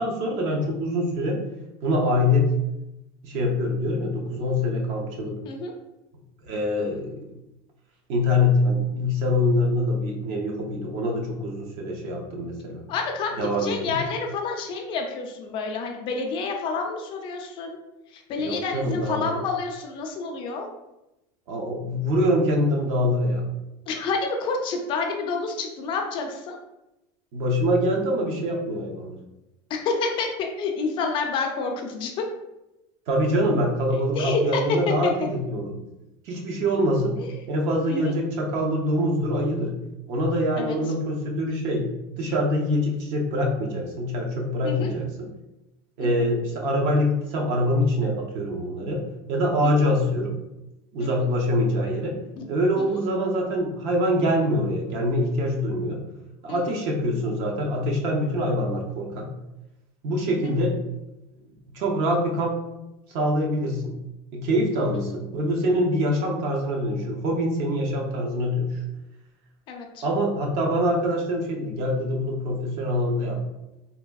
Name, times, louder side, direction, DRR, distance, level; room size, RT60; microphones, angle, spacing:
voice 1, 0.0-1.4 1.8-2.5 3.2-5.3 6.4-7.2 8.1-12.9 13.4-14.0 18.4-19.4 21.5-23.5 27.3-29.2 33.1-35.8 36.3-37.2 37.5-39.7 40.1-41.9 42.2-45.3 46.0-49.0 49.3-50.3 50.9-52.2 52.5-56.0 56.4-59.3 60.0-60.8 61.7-62.6 63.1-63.9 64.3-68.8 70.0-73.4, left 1 dB, 50° right, 0 dB, 0.7 m, -24 dB
voice 2, 12.9-17.8 18.1-20.7 23.9-26.6 29.7-32.2 33.9-35.1 37.2-37.3 37.9-38.1 40.6-40.8 44.6-44.9 46.0-46.1 49.6-49.7 51.0-51.1 52.4-52.5 52.8-52.9 56.5-56.6 69.7-70.0, left 4 dB, 35° left, 3 dB, 0.4 m, -28 dB
3.4 x 2.6 x 2.3 m, 0.93 s
supercardioid pair, 155°, 14 cm